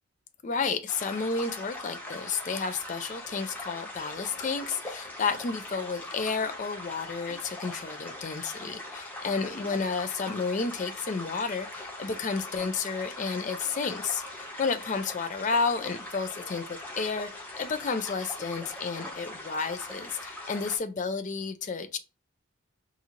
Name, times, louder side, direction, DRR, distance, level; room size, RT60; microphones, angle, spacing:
voice 1, 0.4-17.3 17.6-22.0, left 4 dB, 35° left, 0.3 m, -31 dB
sound 1, 0.9-20.8, left 1 dB, 10° left, 0.8 m, -41 dB
4.3 x 2.7 x 2.5 m
head